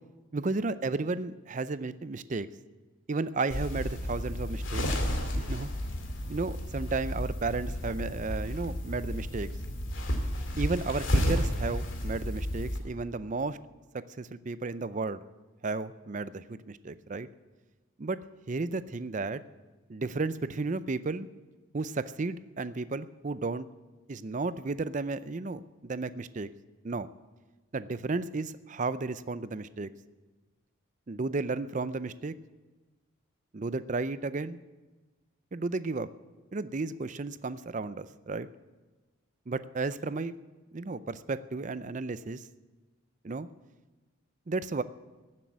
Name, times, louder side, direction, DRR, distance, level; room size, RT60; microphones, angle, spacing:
voice 1, 0.3-2.5 3.1-5.0 5.3-5.7 6.3-9.5 10.6-13.6 13.9-15.2 15.6-17.3 18.0-18.2 18.5-19.4 19.9-21.3 21.7-23.7 24.1-26.5 26.8-27.1 27.7-29.9 31.1-32.3 33.5-34.6 35.5-36.1 36.5-38.5 39.5-40.3 40.7-42.4 43.2-43.5 44.5-44.8, right 3 dB, 35° right, 14 dB, 0.5 m, -33 dB
sound 1, 3.5-12.8, equal, 70° left, 2.3 m, -32 dB
15.5 x 7.6 x 9.4 m, 1.2 s
head